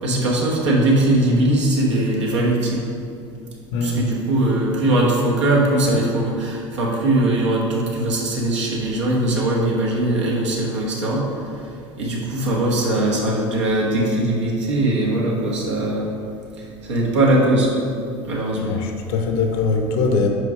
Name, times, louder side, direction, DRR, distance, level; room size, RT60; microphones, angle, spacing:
voice 1, 0.0-2.9 3.8-11.2 12.0-16.1 16.9-17.7 18.3-18.8, right 1 dB, 85° right, -3 dB, 1.3 m, -20 dB
voice 2, 18.6-20.3, left 3 dB, 65° left, 4 dB, 0.8 m, -22 dB
5.0 x 4.6 x 4.8 m, 2.4 s
hypercardioid pair, 75°, 15 cm